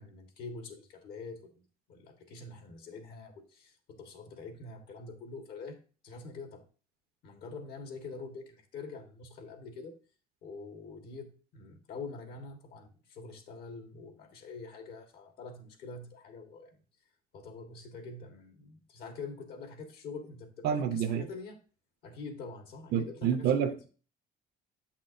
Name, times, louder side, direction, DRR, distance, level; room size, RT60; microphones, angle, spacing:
voice 1, 0.0-5.8 6.0-6.6 7.2-10.0 10.4-16.8 17.3-21.6 22.0-23.6, left 4 dB, 70° left, 1.6 m, -45 dB
voice 2, 20.6-21.3 22.9-23.9, right 8 dB, 70° right, 0.8 m, -28 dB
7.9 x 6.0 x 2.6 m
cardioid pair, 110°, 17 cm